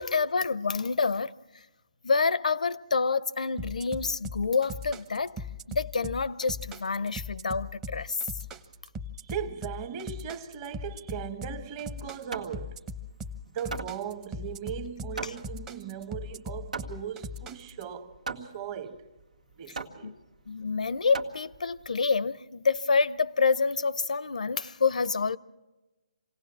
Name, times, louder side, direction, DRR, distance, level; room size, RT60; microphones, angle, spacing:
voice 1, 0.0-1.3 2.0-8.2 15.2-15.3 20.0-20.2 20.5-25.4, left 4 dB, 80° left, 0.7 m, -27 dB
sound 1, 3.6-17.8, left 2 dB, 15° right, 0.9 m, -39 dB
voice 2, 9.2-12.8 13.5-19.1 19.6-20.2, right 8 dB, 30° right, 1.3 m, -38 dB
Hammer, 11.7-21.9, right 4 dB, 90° right, 2.0 m, -41 dB
27.0 x 18.0 x 7.4 m
hypercardioid pair, 155°, 4 cm